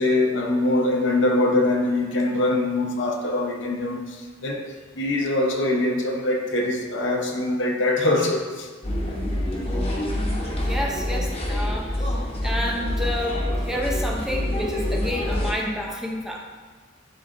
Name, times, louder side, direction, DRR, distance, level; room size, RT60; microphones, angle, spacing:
voice 1, 0.0-4.7 5.0-8.7, left 2 dB, 65° left, 0.8 m, -23 dB
sound 1, 8.8-15.5, left 1 dB, 30° left, 0.9 m, -26 dB
voice 2, 10.6-12.1 12.4-16.4, left 1 dB, 5° right, 0.6 m, -29 dB
10.5 x 4.0 x 2.5 m
head